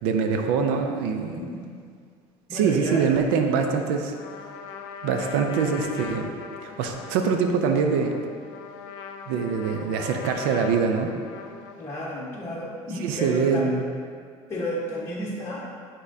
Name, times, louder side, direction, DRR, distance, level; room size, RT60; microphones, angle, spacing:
voice 1, 0.0-1.4 2.5-4.1 5.0-6.3 6.6-8.2 9.3-11.1 13.0-13.8, right 5 dB, 85° right, 4 dB, 0.5 m, -24 dB
voice 2, 1.3-1.8 2.5-3.1 11.8-13.7 14.5-15.7, equal, 20° left, -7 dB, 1.1 m, -32 dB
Trumpet, 4.1-12.2, left 6 dB, 85° left, 0.5 m, -40 dB
10.0 x 3.7 x 2.7 m, 2.1 s
supercardioid pair, 95°, 13 cm